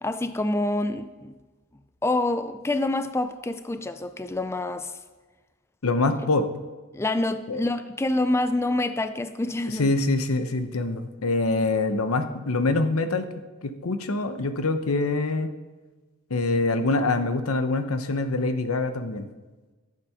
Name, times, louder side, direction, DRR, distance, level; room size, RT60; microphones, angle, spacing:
voice 1, 0.0-1.3 2.0-4.9 6.9-9.9, left 2 dB, 10° left, 11 dB, 0.3 m, -27 dB
voice 2, 5.8-6.4 7.5-7.6 9.8-13.2 13.6-15.5 16.3-19.3, left 2 dB, 90° left, 9 dB, 0.9 m, -25 dB
13.5 x 7.5 x 5.7 m, 1.3 s
head